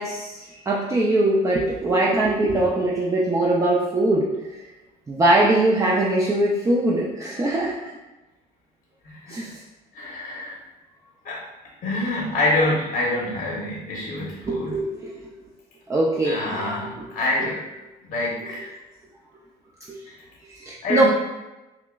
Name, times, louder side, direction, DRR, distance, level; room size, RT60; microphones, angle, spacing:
voice 1, 0.0-4.7 5.1-7.9 9.3-9.5 14.4-15.2 15.9-16.9 19.9-20.0 20.5-21.0, right 1 dB, 20° right, -4 dB, 0.4 m, -22 dB
voice 2, 9.0-9.4 9.9-10.6 11.2-11.4 11.8-14.7 16.2-17.6 18.1-18.7 20.1-20.2 20.8-21.0, left 1 dB, 60° left, -3 dB, 0.8 m, -26 dB
5.6 x 2.0 x 2.3 m, 1.1 s
cardioid pair, 110°, 17 cm